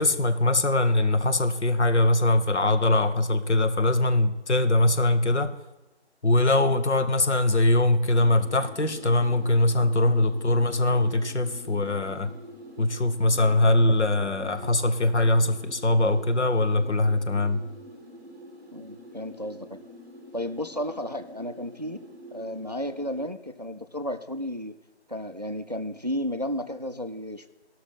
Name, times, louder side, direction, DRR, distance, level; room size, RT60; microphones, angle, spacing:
voice 1, 0.0-5.5 6.2-12.3 12.8-17.6, left 2 dB, 75° left, 9 dB, 0.9 m, -22 dB
sound 1, 8.1-23.3, equal, 15° right, 1.1 m, -46 dB
voice 2, 18.7-19.8 20.3-22.0 22.3-24.7 25.1-27.5, left 1 dB, 40° right, 9 dB, 0.4 m, -33 dB
13.5 x 6.0 x 5.6 m, 1.0 s
figure-of-eight pair, 160°, 34 cm